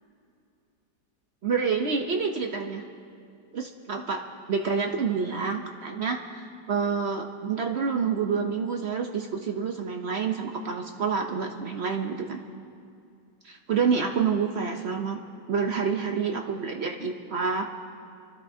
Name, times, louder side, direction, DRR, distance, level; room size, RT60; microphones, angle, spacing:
voice 1, 1.4-2.8 3.5-12.4 13.4-15.2 15.5-17.6, right 5 dB, 65° right, 3 dB, 0.6 m, -28 dB
25.5 x 12.5 x 2.7 m, 2.5 s
omnidirectional pair, 2.0 m